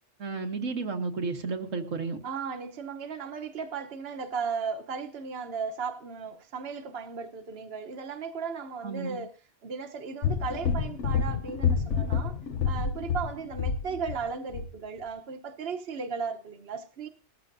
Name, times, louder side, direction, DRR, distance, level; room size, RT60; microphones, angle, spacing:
voice 1, 0.2-2.2 8.8-9.2, right 4 dB, 90° right, 1.7 m, -32 dB
voice 2, 2.2-9.3 9.6-12.3 12.6-17.1, right 5 dB, 55° right, 1.2 m, -36 dB
sound 1, 10.2-14.2 14.5-14.7, left 6 dB, 70° left, 1.2 m, -28 dB
19.0 x 14.5 x 2.6 m
omnidirectional pair, 1.3 m